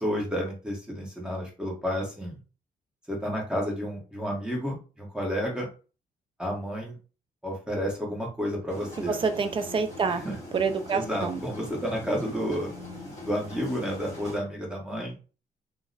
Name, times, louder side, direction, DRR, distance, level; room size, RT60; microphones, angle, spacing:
voice 1, 0.0-2.3 3.1-5.7 6.4-7.0 7.4-9.2 10.0-10.3 10.9-12.7 13.2-15.2, equal, 5° right, 1.2 m, -31 dB
sound 1, 8.7-14.4, left 2 dB, 20° left, 1.7 m, -41 dB
voice 2, 9.1-10.2 10.5-11.4, right 5 dB, 35° right, 0.4 m, -27 dB
2.9 x 2.1 x 3.8 m
cardioid pair, 130°, 15 cm